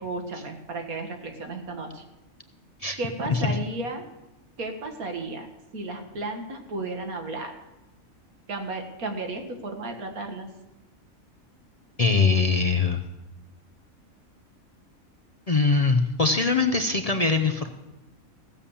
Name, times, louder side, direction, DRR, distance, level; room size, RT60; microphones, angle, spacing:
voice 1, 0.0-2.0 3.0-4.1 4.6-5.5 5.7-7.6 8.5-10.5, right 2 dB, 90° right, 5 dB, 2.0 m, -33 dB
voice 2, 12.0-13.0 15.5-17.7, left 4 dB, 40° left, 5 dB, 0.6 m, -22 dB
16.0 x 7.1 x 7.1 m, 0.98 s
omnidirectional pair, 1.5 m